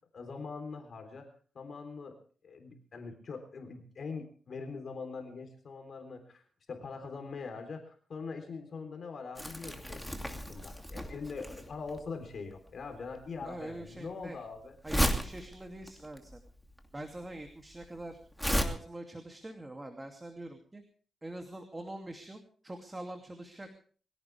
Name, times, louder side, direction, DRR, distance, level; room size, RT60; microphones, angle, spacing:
voice 1, 0.1-1.3 1.5-2.2 2.4-6.4 6.7-14.7, left 4 dB, 55° left, 5 dB, 3.7 m, -43 dB
Crumpling crinkling, 9.4-18.6, equal, 5° left, 2.8 m, -35 dB
voice 2, 13.4-14.4 14.8-16.4 16.9-18.2 18.5-20.8 21.2-23.7, right 1 dB, 15° right, 4 dB, 2.6 m, -44 dB
23.0 x 17.0 x 3.4 m, 0.43 s
cardioid pair, 105°, 0 cm